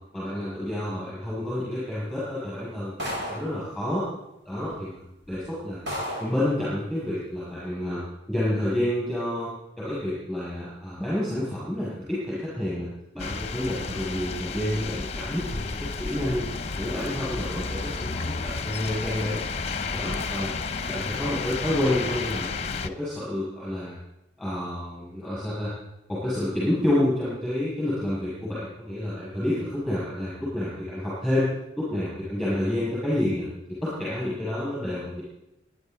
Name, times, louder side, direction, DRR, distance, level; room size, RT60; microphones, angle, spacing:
voice 1, 0.1-4.0 4.4-5.0 5.3-5.8 6.2-8.0 8.3-9.5 9.8-12.9 13.1-16.5 16.8-19.4 19.9-20.5 20.9-22.5 22.8-24.0 24.4-25.7 26.1-31.5 31.8-35.2, left 1 dB, ahead, -8 dB, 6.6 m, -29 dB
sound 1, 3.0-3.6 4.6-4.7 5.2-5.4 5.9-6.4, equal, 70° right, 6.8 m, -32 dB
sound 2, 13.2-22.9, left 4 dB, 35° left, 0.7 m, -32 dB
25.5 x 10.5 x 4.0 m, 0.89 s
head